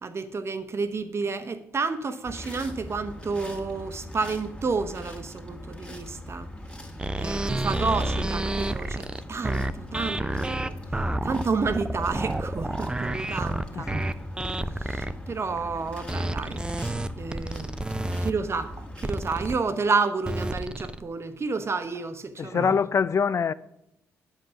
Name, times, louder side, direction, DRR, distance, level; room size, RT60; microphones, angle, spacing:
voice 1, 0.0-6.5 7.2-10.8 11.2-14.1 14.8-16.6 17.1-17.8 18.2-22.7, right 4 dB, 40° right, 0.9 m, -30 dB
sound 1, 2.2-19.5, left 1 dB, 15° left, 1.9 m, -40 dB
sound 2, 7.0-15.1 16.1-18.3 19.0-19.6 20.3-21.0, right 1 dB, 15° right, 0.5 m, -30 dB
voice 2, 22.4-23.5, left 6 dB, 40° left, 0.3 m, -24 dB
8.2 x 5.4 x 5.8 m
hypercardioid pair, 45°, 7 cm